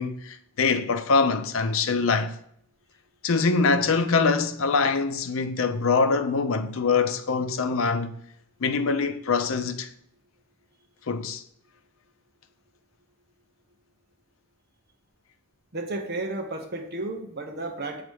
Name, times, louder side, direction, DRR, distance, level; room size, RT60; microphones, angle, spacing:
voice 1, 0.0-2.3 3.2-8.1 8.6-9.9 11.1-11.4, left 4 dB, 70° left, 0.5 m, -24 dB
voice 2, 15.7-18.0, right 2 dB, 50° right, 0.9 m, -32 dB
7.5 x 3.9 x 3.4 m
head